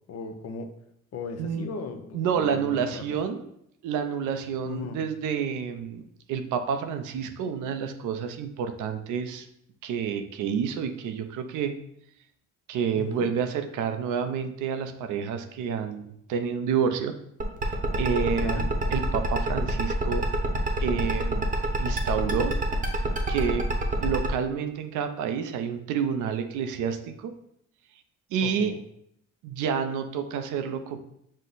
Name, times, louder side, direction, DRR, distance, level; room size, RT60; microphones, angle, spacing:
voice 1, 0.1-0.7 1.1-3.1 4.6-5.0 13.0-13.3 18.4-18.7 28.4-28.8, left 5 dB, 55° left, 6 dB, 0.7 m, -37 dB
voice 2, 2.1-3.4 3.8-6.0 6.3-9.5 9.8-11.8 12.7-17.1 18.0-20.3 20.8-21.5 21.8-22.6 23.3-23.7 24.0-27.3 28.3-28.7 29.4-31.0, right 7 dB, 90° right, 8 dB, 0.6 m, -29 dB
sound 1, 17.4-24.3, right 3 dB, 25° right, 0.8 m, -27 dB
6.3 x 2.1 x 3.9 m, 0.74 s
cardioid pair, 90°, 30 cm